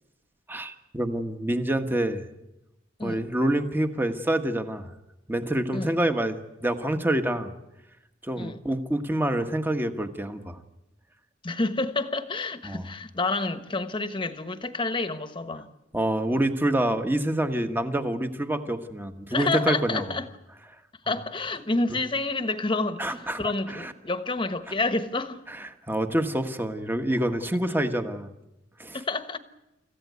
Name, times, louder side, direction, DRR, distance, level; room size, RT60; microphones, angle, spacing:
voice 1, 0.5-2.3 3.0-4.9 5.3-7.5 8.2-10.6 12.6-12.9 15.9-20.0 23.0-23.4 23.7-23.9 25.5-28.3 28.8-29.0, right 1 dB, 10° right, 1.3 m, -27 dB
voice 2, 11.4-15.7 19.3-20.3 21.1-25.4 28.9-29.4, left 3 dB, 25° left, 1.2 m, -29 dB
26.0 x 15.0 x 9.4 m
head